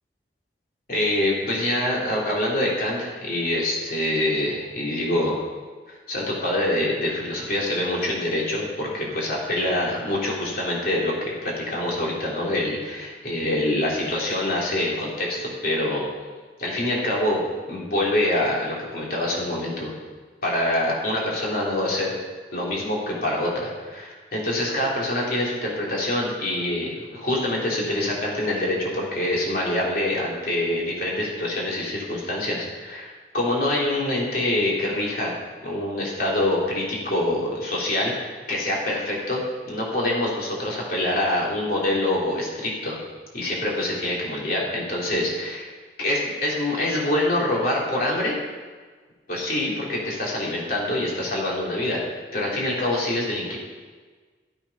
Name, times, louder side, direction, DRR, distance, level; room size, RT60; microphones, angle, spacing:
voice 1, 0.9-5.4 5.9-16.0 16.6-19.9 20.4-22.2 22.5-35.3 35.6-43.0 43.3-45.7 46.0-48.4 49.3-53.6, left 1 dB, 50° left, -4 dB, 3.4 m, -25 dB
14.0 x 8.7 x 5.6 m, 1.4 s
head